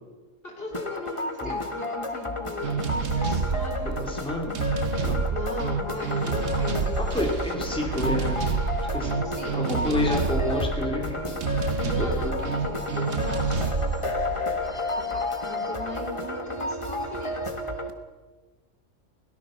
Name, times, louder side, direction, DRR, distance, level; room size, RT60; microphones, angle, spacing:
voice 1, 0.4-4.1 5.3-7.3 9.2-10.1 11.8-13.9 15.0-17.5, left 1 dB, 45° left, 1 dB, 3.9 m, -38 dB
sound 1, 0.7-17.9, left 2 dB, 25° left, 1.6 m, -32 dB
sound 2, 2.6-15.4, right 5 dB, 60° right, 1.4 m, -29 dB
voice 2, 3.8-4.5 5.0-5.2 7.0-8.4 8.9-9.2 9.5-11.2 11.5-12.3, left 2 dB, 5° left, 0 dB, 3.1 m, -30 dB
23.0 x 17.5 x 6.5 m, 1.3 s
omnidirectional pair, 1.4 m